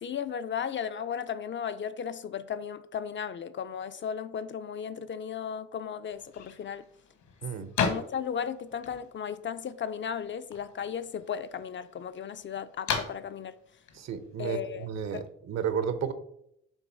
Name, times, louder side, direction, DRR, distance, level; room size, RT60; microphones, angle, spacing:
voice 1, 0.0-6.9 7.8-13.5 14.4-15.3, left 7 dB, 40° left, 0.4 m, -35 dB
sound 1, 6.1-15.3, left 6 dB, 70° left, 1.2 m, -39 dB
voice 2, 14.0-16.1, right 7 dB, 60° right, 0.9 m, -32 dB
7.1 x 3.0 x 5.5 m
cardioid pair, 90°, 30 cm